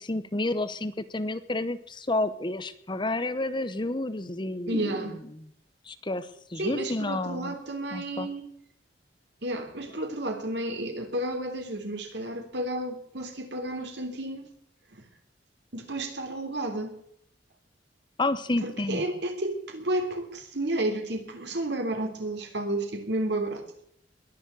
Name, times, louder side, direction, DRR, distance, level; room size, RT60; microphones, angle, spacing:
voice 1, 0.0-5.0 5.9-7.5 7.9-8.3 18.2-19.0, left 2 dB, 25° left, 0.9 m, -30 dB
voice 2, 4.7-5.2 6.6-8.5 9.4-14.5 14.9-15.1 15.7-17.0 18.6-23.8, right 1 dB, 65° right, 3.3 m, -32 dB
21.0 x 7.3 x 8.1 m
head